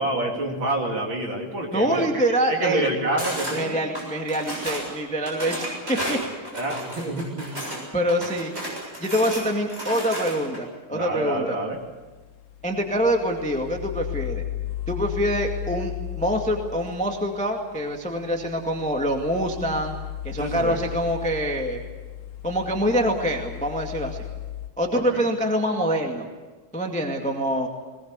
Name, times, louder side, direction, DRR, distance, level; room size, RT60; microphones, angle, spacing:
voice 1, 0.0-3.8 6.5-7.7 10.9-11.8 20.4-20.8 24.9-25.3, right 2 dB, 35° right, 1 dB, 3.2 m, -28 dB
voice 2, 1.7-2.9 3.5-6.2 7.9-8.5 9.0-11.5 12.6-14.4 14.9-19.9 20.2-21.8 22.4-24.3 24.8-26.3 26.7-27.7, equal, 5° left, 2 dB, 0.8 m, -25 dB
sound 1, 3.2-3.6 3.9-4.9 5.3-7.8 8.1-10.6, equal, 15° right, 7.3 m, -32 dB
sound 2, 11.8-24.7, left 12 dB, 65° left, 3.2 m, -36 dB
20.5 x 20.0 x 8.2 m, 1.2 s
omnidirectional pair, 4.2 m